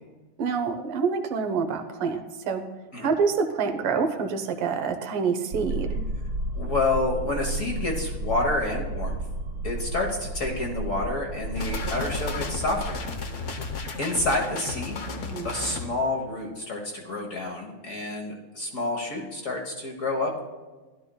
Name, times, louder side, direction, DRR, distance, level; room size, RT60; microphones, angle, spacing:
voice 1, 0.4-2.6 3.0-6.0 15.2-15.5, right 5 dB, 85° right, 7 dB, 1.8 m, -27 dB
sound 1, 5.5-12.9, right 2 dB, 55° right, 1.4 m, -32 dB
voice 2, 6.5-9.2 9.6-13.0 14.0-15.0 15.4-20.4, left 2 dB, 45° left, 1 dB, 1.2 m, -29 dB
sound 2, 11.6-15.9, left 4 dB, 65° left, 0.7 m, -33 dB
15.5 x 11.5 x 2.3 m, 1.3 s
omnidirectional pair, 2.4 m